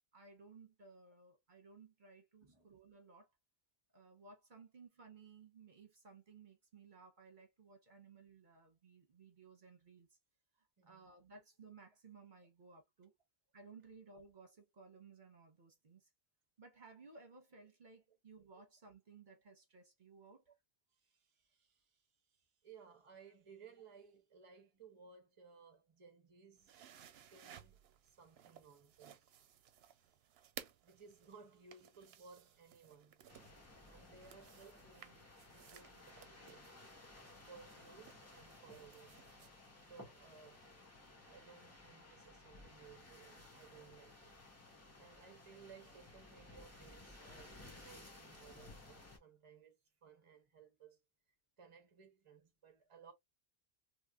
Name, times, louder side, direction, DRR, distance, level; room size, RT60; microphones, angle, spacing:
voice 1, 0.1-3.3 3.9-10.2 10.6-13.2 13.5-16.1 16.6-20.4, right 4 dB, 50° right, 1.1 m, -59 dB
voice 2, 10.8-11.1 20.9-26.7 27.3-29.3 29.8-30.2 30.8-33.2 33.9-36.7 37.5-39.3 39.9-40.7 41.3-44.4 45.0-51.0 51.6-53.1, right 6 dB, 35° right, 0.9 m, -60 dB
sound 1, 26.6-39.5, right 9 dB, 80° right, 0.8 m, -59 dB
sound 2, 33.3-49.2, left 2 dB, 15° left, 1.0 m, -58 dB
3.1 x 3.0 x 2.4 m
omnidirectional pair, 1.0 m